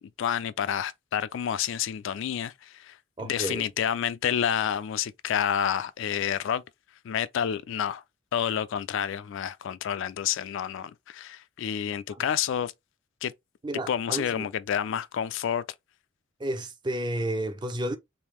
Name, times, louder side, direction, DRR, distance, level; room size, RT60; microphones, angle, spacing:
voice 1, 0.2-6.6 7.0-8.0 8.3-12.7 13.2-13.3 13.9-15.6, left 9 dB, 65° left, 0.3 m, -29 dB
voice 2, 3.2-3.7 13.6-14.5 16.4-18.0, right 1 dB, 25° right, 0.5 m, -31 dB
3.5 x 2.7 x 3.0 m
head